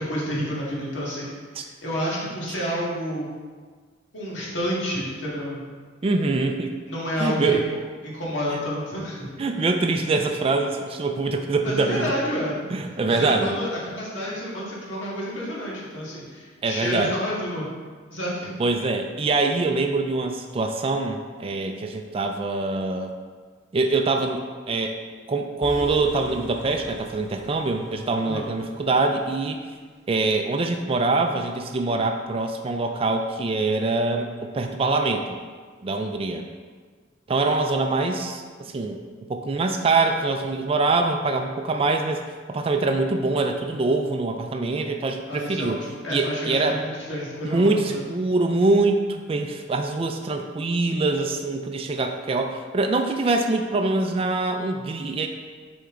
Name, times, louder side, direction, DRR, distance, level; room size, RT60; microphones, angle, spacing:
voice 1, 0.0-3.3 4.1-5.7 6.9-7.6 8.0-9.4 11.6-12.6 13.1-17.7 18.1-18.5 28.2-28.5 45.3-48.0, equal, 80° left, -5 dB, 1.7 m, -29 dB
voice 2, 6.0-6.7 7.2-7.6 9.4-12.1 12.7-13.6 16.6-17.2 18.6-23.1 23.7-25.0 25.3-29.6 30.1-35.2 35.8-36.4 37.3-39.0 39.3-42.2 42.5-45.8 46.1-46.8 47.5-55.3, right 3 dB, 30° right, 4 dB, 0.4 m, -24 dB
sound 1, 25.6-29.7, right 1 dB, 15° left, 1.1 m, -42 dB
6.8 x 4.4 x 3.7 m, 1.5 s
head